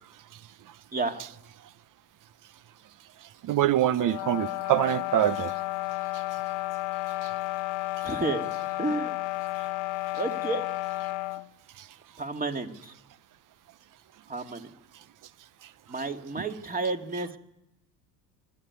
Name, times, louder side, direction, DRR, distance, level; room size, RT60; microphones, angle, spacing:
voice 1, 3.4-5.5, right 12 dB, 40° right, 0.8 m, -24 dB
sound 1, 4.0-11.5, left 20 dB, 70° left, 0.9 m, -32 dB
voice 2, 8.0-8.5 8.8-9.2 10.1-10.7 12.2-12.9 14.3-14.7 15.9-17.4, right 3 dB, 20° right, 2.2 m, -31 dB
25.0 x 11.5 x 9.6 m
hypercardioid pair, 80°, 47 cm